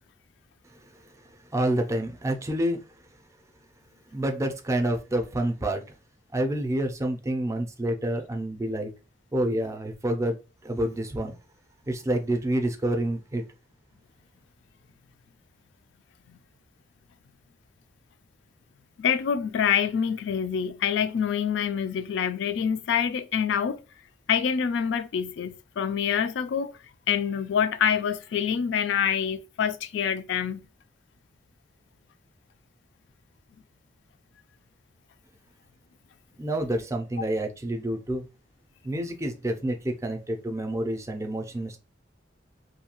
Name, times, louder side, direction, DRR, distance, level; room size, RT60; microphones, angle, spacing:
voice 1, 1.5-2.8 4.1-5.8 6.3-8.9 9.3-10.4 10.6-11.3 11.9-13.4 36.4-38.3 38.8-41.8, right 1 dB, 15° right, 0.4 m, -28 dB
voice 2, 19.0-23.8 24.3-26.8 27.1-30.6, left 7 dB, 75° left, 0.3 m, -26 dB
2.7 x 2.2 x 2.9 m
head